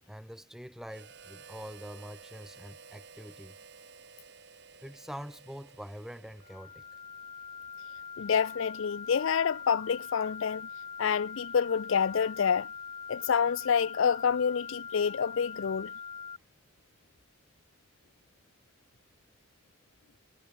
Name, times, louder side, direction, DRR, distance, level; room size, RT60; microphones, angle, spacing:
voice 1, 0.1-3.6 4.8-6.8, equal, ahead, 3.1 m, -45 dB
Harmonica, 0.9-6.9, right 5 dB, 55° right, 3.5 m, -53 dB
sound 1, 6.4-16.4, left 6 dB, 25° left, 0.8 m, -43 dB
voice 2, 8.2-10.7 11.0-12.7 13.1-15.9, left 7 dB, 70° left, 0.4 m, -28 dB
head